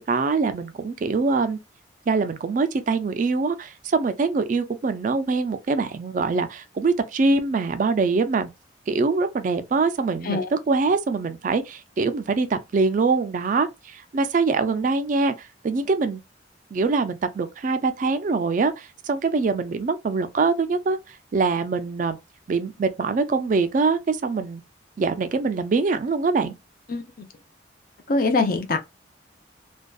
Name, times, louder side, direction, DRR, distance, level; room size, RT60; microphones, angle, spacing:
voice 1, 0.0-1.6 2.1-8.5 8.9-13.7 13.9-15.3 15.6-16.2 16.7-21.0 21.3-22.2 22.5-24.6 25.0-26.5, right 4 dB, 45° right, 0.3 m, -23 dB
voice 2, 26.9-27.3 28.1-28.8, left 3 dB, 50° left, 0.5 m, -23 dB
2.5 x 2.2 x 2.3 m
head